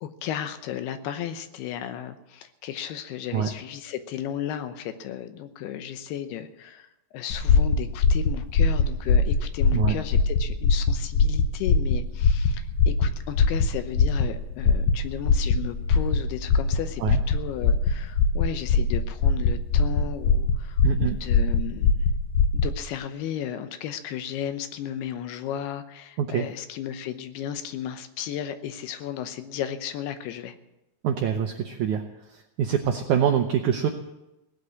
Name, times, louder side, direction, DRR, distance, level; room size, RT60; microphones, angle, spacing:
voice 1, 0.0-6.9 7.1-21.9 22.5-30.6, left 10 dB, 85° left, 10 dB, 2.9 m, -34 dB
sound 1, 7.3-22.7, left 4 dB, 70° left, 1.9 m, -22 dB
voice 2, 20.8-21.2 26.2-26.4 31.0-32.0 32.3-33.9, right 8 dB, 85° right, 5 dB, 1.7 m, -25 dB
17.5 x 8.0 x 8.3 m, 0.94 s
omnidirectional pair, 4.5 m